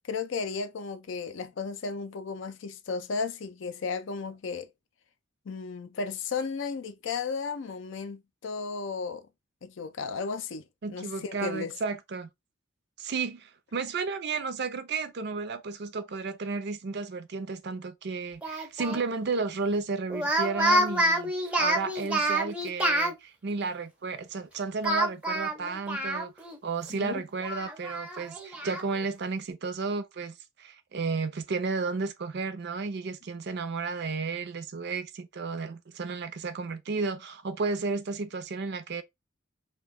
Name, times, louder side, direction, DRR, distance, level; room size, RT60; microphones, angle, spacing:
voice 1, 0.0-4.7 5.5-9.3 9.6-11.8 26.9-27.2, left 5 dB, 60° left, 0.4 m, -34 dB
voice 2, 10.8-12.3 13.0-21.3 21.6-26.3 26.6-39.0, right 4 dB, 55° right, 0.5 m, -33 dB
Speech, 18.4-19.0 20.1-23.1 24.8-26.6 26.9-27.0 27.4-28.8, right 1 dB, 5° right, 0.5 m, -28 dB
2.8 x 2.2 x 3.4 m
head